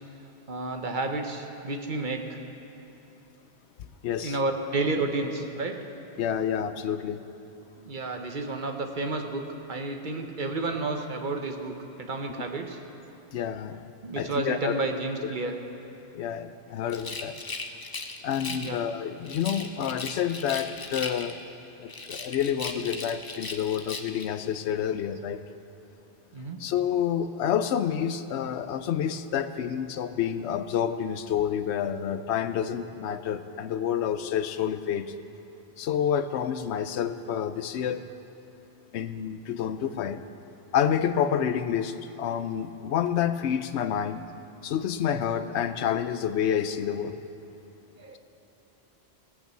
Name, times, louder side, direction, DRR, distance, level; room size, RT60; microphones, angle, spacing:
voice 1, 0.5-2.4 4.2-5.8 7.8-12.8 14.0-15.5 18.5-18.8 26.3-26.6 48.0-48.2, right 2 dB, 50° right, 4 dB, 1.0 m, -31 dB
voice 2, 4.0-4.4 6.2-7.2 13.3-14.8 16.1-17.4 18.2-21.4 21.8-25.4 26.6-35.1 35.8-38.0 38.9-40.2 40.7-44.3 44.6-47.2, left 9 dB, 85° left, 11 dB, 0.9 m, -28 dB
Rattle, 16.9-18.8 19.2-21.5 21.9-24.3, left 3 dB, 25° left, 0.5 m, -37 dB
17.5 x 6.0 x 7.5 m, 3.0 s
omnidirectional pair, 1.1 m